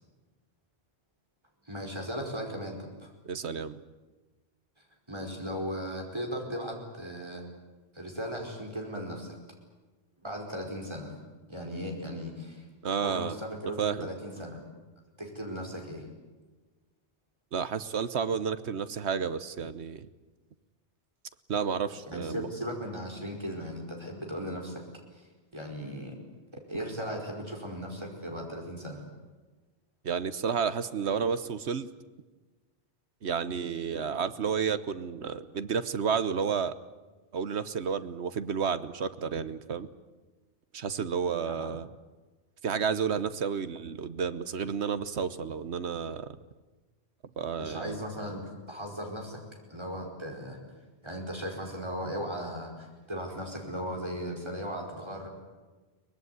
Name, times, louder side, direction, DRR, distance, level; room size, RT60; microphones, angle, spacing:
voice 1, 1.6-3.1 5.1-7.4 7.9-9.3 10.2-11.1 11.5-12.6 13.0-14.6 15.2-16.1 22.1-24.8 25.1-25.3 25.5-26.2 26.5-29.1 41.5-41.7 47.6-49.4 49.7-50.6 51.0-55.3, equal, 25° right, 0 dB, 4.9 m, -37 dB
voice 2, 3.2-3.8 12.8-13.4 13.8-14.1 17.5-20.1 21.5-22.5 30.0-31.9 33.2-36.8 37.3-39.9 40.7-41.9 42.6-46.3 47.4-48.0, right 6 dB, 70° right, 13 dB, 1.3 m, -31 dB
23.5 x 20.0 x 9.6 m, 1.3 s
omnidirectional pair, 1.2 m